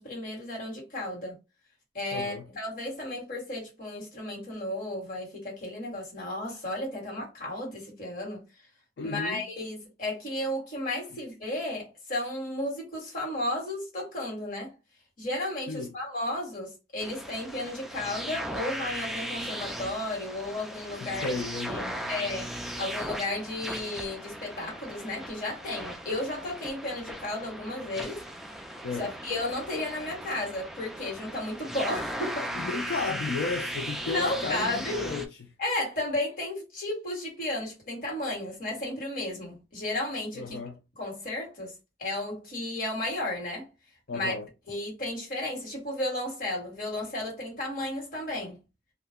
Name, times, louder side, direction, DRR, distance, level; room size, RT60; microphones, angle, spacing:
voice 1, 0.0-1.4 1.9-8.4 9.0-14.7 15.2-21.3 21.6-21.8 22.1-28.3 29.0-32.5 34.1-35.0 35.6-40.6 41.0-41.7 42.0-43.7 44.1-44.3 44.7-48.6, left 1 dB, 50° left, 1.5 m, -33 dB
voice 2, 2.1-2.5 9.0-9.5 15.7-16.0 21.0-22.1 28.8-29.1 32.5-35.5 40.3-40.8 44.1-44.5, left 4 dB, 75° left, 0.4 m, -34 dB
sound 1, 17.0-35.3, equal, ahead, 0.3 m, -37 dB
2.3 x 2.1 x 3.4 m
head